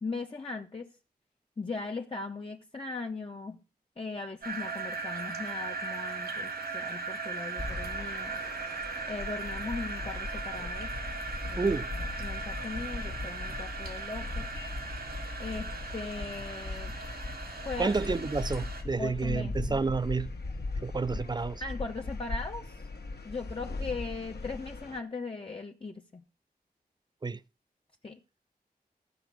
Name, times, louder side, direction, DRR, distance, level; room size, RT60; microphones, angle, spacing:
voice 1, 0.0-1.0 1.6-3.6 4.0-8.4 9.0-11.0 11.5-14.5 15.4-16.9 17.6-18.3 19.0-19.7 21.6-22.7 23.2-26.2 28.0-28.2, left 3 dB, 35° left, 0.8 m, -39 dB
sound 1, 4.4-18.8, right 4 dB, 75° right, 2.0 m, -38 dB
sound 2, 7.6-25.0, left 3 dB, 80° left, 1.4 m, -39 dB
voice 2, 11.6-11.9 17.8-20.3 20.8-21.6 27.2-27.4, right 4 dB, 25° right, 0.4 m, -30 dB
14.5 x 5.0 x 6.0 m
wide cardioid pair, 60°, 16 cm